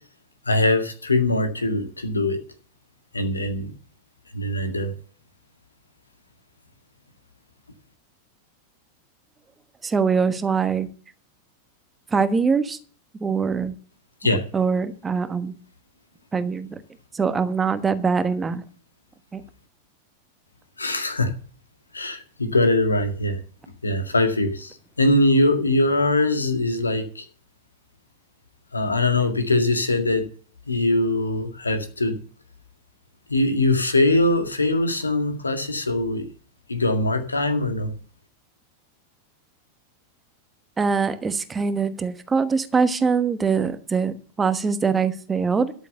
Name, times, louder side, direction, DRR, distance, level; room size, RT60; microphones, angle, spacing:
voice 1, 0.5-2.4 3.1-3.7 4.3-4.9 14.2-14.4 20.8-21.3 21.9-23.4 23.8-27.3 28.7-30.3 30.7-32.2 33.3-36.3 36.7-37.9, left 2 dB, 80° left, 7 dB, 1.9 m, -22 dB
voice 2, 9.8-10.9 12.1-12.8 13.2-13.7 14.5-15.5 16.3-16.8 17.1-18.6 19.3-19.4 40.8-45.7, right 5 dB, 15° right, 11 dB, 1.2 m, -23 dB
13.0 x 7.1 x 7.0 m, 0.43 s
figure-of-eight pair, 90°, 0 cm